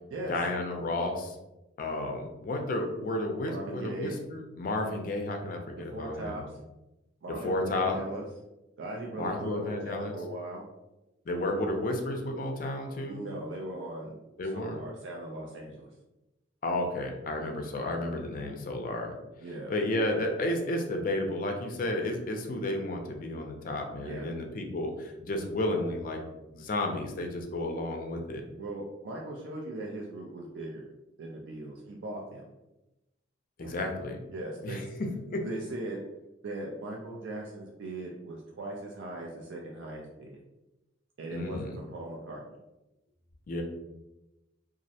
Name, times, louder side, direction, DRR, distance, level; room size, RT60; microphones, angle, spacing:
voice 1, 0.3-1.4 1.8-6.4 7.4-8.0 9.2-10.1 11.3-13.2 14.4-14.8 16.6-19.1 19.7-26.2 26.5-28.4 33.6-34.2 34.6-35.4 41.3-41.7 43.5-43.6, left 1 dB, 45° left, 3 dB, 0.4 m, -32 dB
voice 2, 3.5-4.1 5.9-6.4 7.2-8.2 8.8-10.6 13.1-14.2 14.4-15.9 19.4-19.7 24.0-24.3 28.6-30.9 31.2-32.4 33.6-33.9 34.3-34.9 35.4-36.0 36.4-40.4 41.2-42.4, right 2 dB, 70° right, -1 dB, 0.4 m, -39 dB
2.4 x 2.0 x 2.7 m, 0.97 s
head